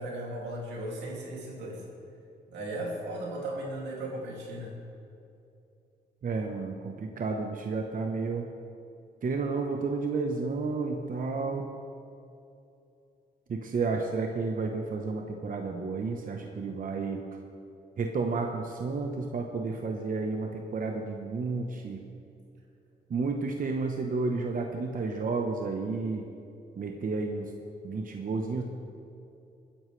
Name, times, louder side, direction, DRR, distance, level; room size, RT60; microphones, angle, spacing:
voice 1, 0.0-1.8 2.5-4.7, right 1 dB, 90° right, -2 dB, 2.7 m, -36 dB
voice 2, 6.2-8.5 9.2-11.6 13.5-17.2 18.0-22.0 23.1-26.2 26.8-27.5 27.8-28.6, right 4 dB, 50° right, 2 dB, 1.1 m, -31 dB
21.0 x 10.0 x 3.4 m, 2.7 s
cardioid pair, 65°, 17 cm